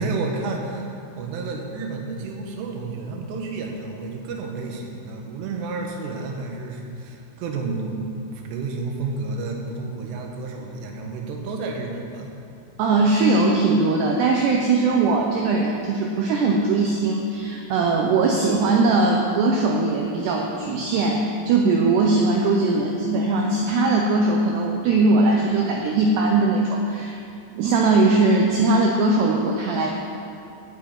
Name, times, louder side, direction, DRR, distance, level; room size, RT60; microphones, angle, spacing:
voice 1, 0.0-8.0 8.3-12.3, right 3 dB, 70° right, 1 dB, 2.9 m, -31 dB
voice 2, 12.8-27.2 27.5-29.9, right 3 dB, 90° right, 0 dB, 2.3 m, -20 dB
8.8 x 8.4 x 8.7 m, 2.7 s
omnidirectional pair, 5.9 m